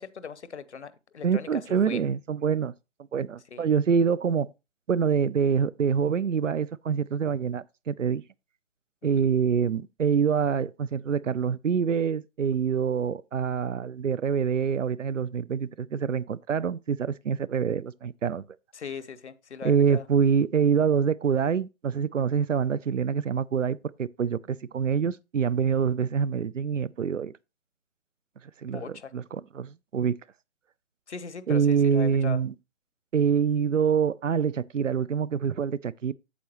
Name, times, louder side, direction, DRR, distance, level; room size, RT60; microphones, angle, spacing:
voice 1, 0.0-2.0 3.5-3.7 18.7-20.0 28.7-29.1 31.1-32.4, left 6 dB, 65° left, 0.9 m, -39 dB
voice 2, 1.2-2.7 3.1-4.5 4.9-8.2 9.0-18.4 19.6-27.3 28.6-28.8 29.1-30.1 31.5-32.5 33.1-36.1, right 7 dB, 85° right, 0.5 m, -25 dB
8.4 x 7.3 x 3.0 m
figure-of-eight pair, 140°, 37 cm